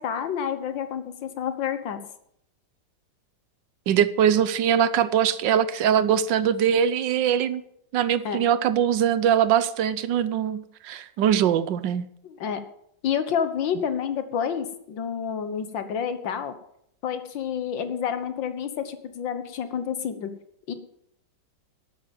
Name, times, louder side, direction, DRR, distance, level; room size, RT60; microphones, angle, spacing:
voice 1, 0.0-2.0 8.2-8.4 12.2-12.6 13.0-16.5 17.0-20.3 20.7-20.8, left 8 dB, 80° left, 10 dB, 1.9 m, -29 dB
voice 2, 3.9-7.6 7.9-12.0, right 9 dB, 75° right, 14 dB, 1.4 m, -22 dB
13.0 x 8.6 x 7.4 m, 0.73 s
omnidirectional pair, 2.0 m